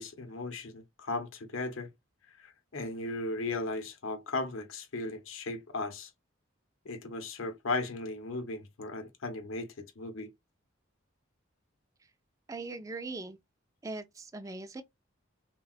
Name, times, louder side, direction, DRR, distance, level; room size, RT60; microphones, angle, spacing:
voice 1, 0.0-1.9 2.4-6.1 6.8-10.3, left 2 dB, 80° left, 0.7 m, -36 dB
voice 2, 12.5-13.4 13.8-14.8, right 3 dB, 15° right, 0.3 m, -40 dB
3.4 x 2.1 x 2.3 m
head